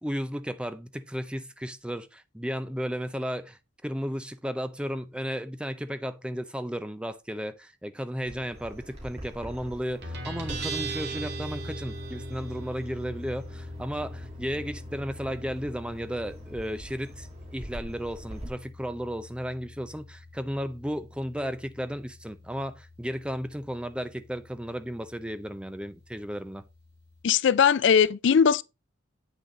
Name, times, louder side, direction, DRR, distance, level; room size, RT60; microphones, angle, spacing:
voice 1, 0.0-26.6, equal, 5° right, 0.6 m, -34 dB
Bird vocalization bird call bird song, 8.2-18.5, right 1 dB, 35° right, 2.8 m, -45 dB
Guitar, 10.0-27.2, right 1 dB, 55° right, 2.4 m, -41 dB
voice 2, 27.2-28.6, left 7 dB, 65° left, 0.4 m, -20 dB
8.4 x 6.4 x 4.0 m
head